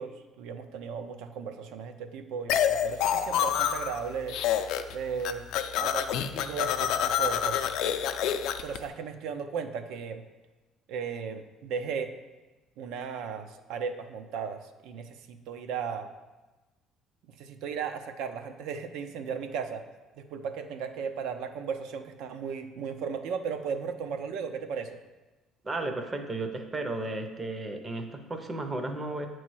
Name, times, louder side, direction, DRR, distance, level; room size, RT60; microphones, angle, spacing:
voice 1, 0.0-4.4 4.9-5.4 5.8-7.8 8.6-10.2 10.9-12.1 12.8-16.1 17.4-19.8 20.2-25.0, right 6 dB, 75° right, 7 dB, 0.5 m, -36 dB
sound 1, 2.5-4.0 4.3-4.9 5.2-8.8, left 9 dB, 65° left, 0.4 m, -27 dB
voice 2, 25.6-29.3, right 2 dB, 15° right, 5 dB, 0.5 m, -34 dB
8.2 x 3.1 x 6.1 m, 1.2 s
cardioid pair, 170°, 0 cm